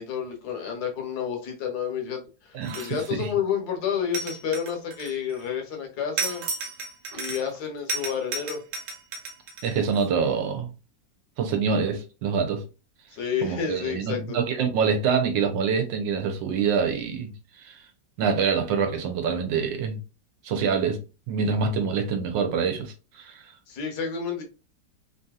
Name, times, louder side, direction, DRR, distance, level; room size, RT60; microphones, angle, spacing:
voice 1, 0.0-6.4 7.1-8.6 13.1-14.4 23.7-24.4, left 7 dB, 65° left, 1.4 m, -30 dB
voice 2, 2.5-3.3 9.6-10.7 11.4-12.6 13.4-17.3 17.6-17.8 18.2-20.0 20.4-21.0 21.3-23.4, right 6 dB, 85° right, 1.4 m, -26 dB
sound 1, 2.6-3.2 4.1-5.4 6.2-7.6 7.9-10.0, right 3 dB, 65° right, 0.8 m, -33 dB
3.4 x 2.7 x 2.3 m
omnidirectional pair, 2.0 m